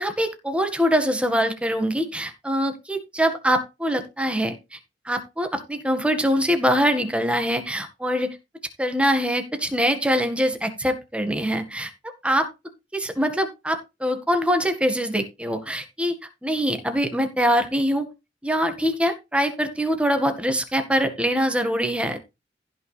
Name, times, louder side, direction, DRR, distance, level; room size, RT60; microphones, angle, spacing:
voice 1, 0.0-4.8 5.1-8.4 8.8-12.5 12.9-16.2 16.4-18.1 18.4-22.2, equal, 5° right, 7 dB, 1.8 m, -23 dB
15.5 x 6.1 x 3.4 m, 0.25 s
head